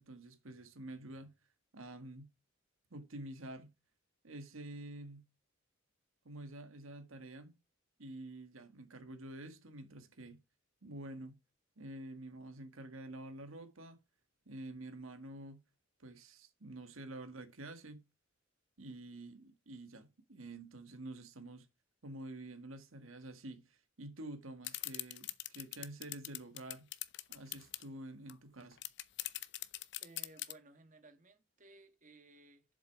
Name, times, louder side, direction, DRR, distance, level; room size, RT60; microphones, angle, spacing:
voice 1, 0.0-1.3 1.7-2.3 2.9-3.7 4.2-5.2 6.2-7.5 8.0-10.4 10.8-11.4 11.8-14.0 14.4-15.6 16.0-18.0 18.8-21.7 22.0-26.9 27.3-28.8, right 1 dB, 90° right, 1.7 m, -48 dB
sound 1, 24.6-27.8 28.3-28.4 28.6-30.5, left 15 dB, 60° left, 0.7 m, -41 dB
voice 2, 30.0-32.6, right 2 dB, 40° right, 1.6 m, -59 dB
7.8 x 7.3 x 4.7 m
head